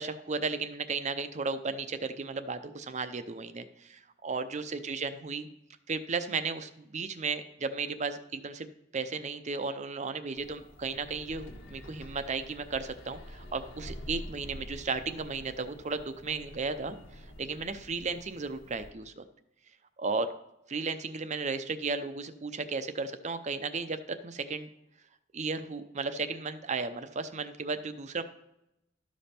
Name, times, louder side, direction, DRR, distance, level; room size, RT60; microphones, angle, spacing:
voice 1, 0.0-5.5 5.9-8.7 8.9-19.2 20.0-20.3 20.7-24.7 25.3-28.2, right 4 dB, 35° right, 10 dB, 0.6 m, -34 dB
sound 1, 10.4-18.9, equal, 70° left, 1.4 m, -47 dB
12.5 x 5.2 x 4.3 m, 0.86 s
head